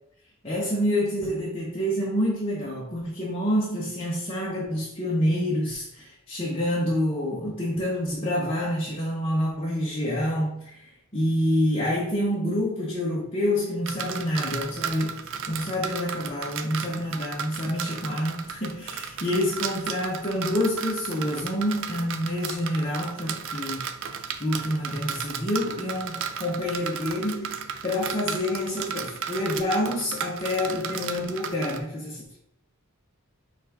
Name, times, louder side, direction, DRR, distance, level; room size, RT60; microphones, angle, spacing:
voice 1, 0.4-32.4, left 1 dB, 25° left, -4 dB, 0.7 m, -27 dB
sound 1, 13.9-31.8, right 7 dB, 60° right, 0.4 m, -35 dB
5.8 x 2.4 x 3.5 m, 0.75 s
head